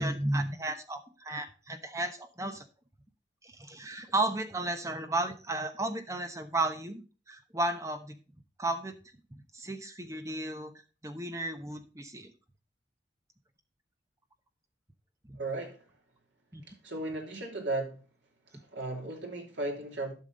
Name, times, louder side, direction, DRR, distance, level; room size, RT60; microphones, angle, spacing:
voice 1, 0.0-2.6 3.4-8.1 8.6-8.9 9.5-10.7 11.0-12.3 15.3-15.4 16.5-16.6, right 2 dB, 15° right, 7 dB, 1.0 m, -33 dB
voice 2, 15.3-15.8 16.8-18.0 18.7-20.1, right 2 dB, 80° right, 1 dB, 2.8 m, -35 dB
12.0 x 6.0 x 3.9 m, 0.35 s
head